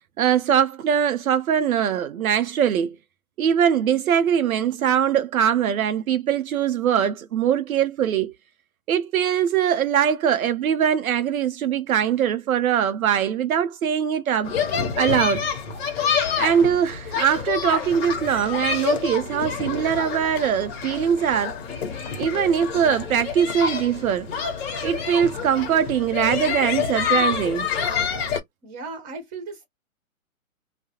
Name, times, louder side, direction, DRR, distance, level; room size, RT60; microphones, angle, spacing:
voice 1, 0.2-2.9 3.4-8.3 8.9-14.6 15.0-15.4 16.4-21.6 22.2-24.3 24.8-27.7, right 8 dB, 75° right, 0.5 m, -22 dB
sound 1, 14.4-28.4, left 6 dB, 45° left, 0.9 m, -27 dB
voice 2, 28.6-29.6, right 3 dB, 20° right, 1.0 m, -36 dB
2.3 x 2.0 x 2.7 m
hypercardioid pair, 130°, 43 cm